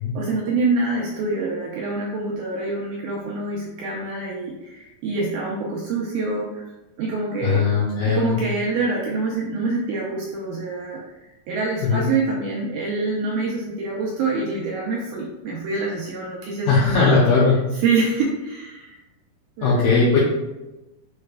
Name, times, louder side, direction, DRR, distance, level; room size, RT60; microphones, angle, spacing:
voice 1, 0.2-6.6 7.0-7.6 8.1-17.2 17.8-19.0 19.6-19.8, right 3 dB, 80° right, -4 dB, 1.8 m, -26 dB
voice 2, 7.4-8.4 11.8-12.1 16.7-17.5 19.6-20.2, left 4 dB, 75° left, -7 dB, 2.2 m, -18 dB
6.7 x 3.2 x 2.2 m, 1.0 s
omnidirectional pair, 4.1 m